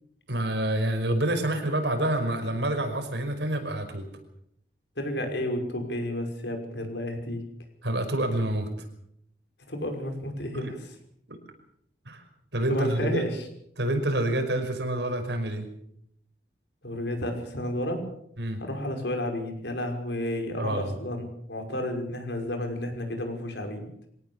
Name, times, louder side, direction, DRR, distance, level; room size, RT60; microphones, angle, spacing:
voice 1, 0.3-4.1 7.8-8.7 10.5-10.7 11.3-11.4 12.1-12.2 12.5-13.2 13.8-15.7 18.4-18.6 20.6-20.9, right 1 dB, 85° right, 6 dB, 5.5 m, -27 dB
voice 2, 5.0-7.4 9.7-10.9 12.7-13.4 16.8-18.1 18.6-23.9, left 1 dB, 80° left, 4 dB, 5.7 m, -31 dB
24.0 x 18.0 x 7.2 m, 0.73 s
head